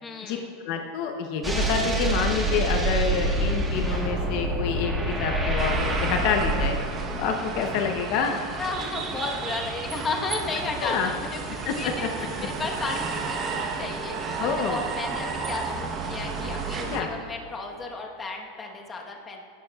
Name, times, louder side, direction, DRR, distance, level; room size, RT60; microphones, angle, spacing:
voice 1, 0.0-0.5 8.6-19.4, left 3 dB, 20° left, 1 dB, 1.2 m, -34 dB
voice 2, 0.6-6.7 7.1-8.4 10.8-11.1 11.7-11.9 14.4-14.9 16.9-17.1, left 6 dB, 50° left, 4 dB, 0.8 m, -27 dB
sound 1, 1.4-6.7, right 1 dB, 10° right, 1.4 m, -26 dB
sound 2, 5.6-17.0, right 4 dB, 30° right, 1.0 m, -32 dB
17.0 x 12.0 x 2.4 m, 2.4 s
supercardioid pair, 145°, 0 cm